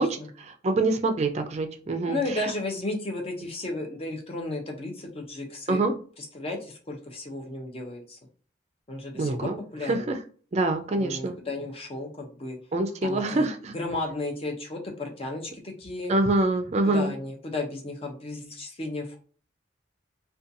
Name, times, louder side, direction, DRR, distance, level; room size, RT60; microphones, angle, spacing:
voice 1, 0.4-2.2 5.7-5.9 9.1-9.6 9.8-10.2 10.5-11.4 12.7-13.8 16.1-17.1, right 2 dB, 35° right, 6 dB, 0.3 m, -25 dB
voice 2, 2.1-5.8 6.2-8.2 8.9-10.1 11.0-12.6 13.0-13.5 13.7-16.1 16.9-19.2, left 2 dB, 30° left, 1 dB, 0.6 m, -34 dB
2.5 x 2.3 x 2.6 m, 0.42 s
head